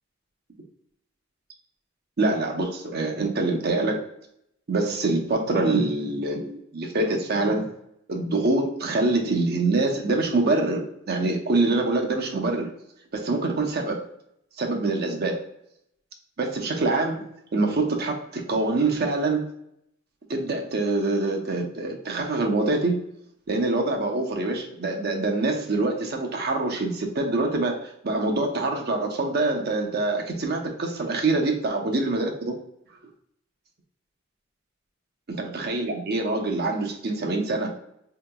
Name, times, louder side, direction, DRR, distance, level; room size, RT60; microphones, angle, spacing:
voice 1, 2.2-4.0 4.7-7.7 8.1-12.7 13.1-14.1 14.6-15.4 16.4-19.5 20.3-23.0 23.5-32.6 35.3-37.7, right 2 dB, 50° right, 2 dB, 0.7 m, -25 dB
4.5 x 2.9 x 2.2 m, 0.76 s
head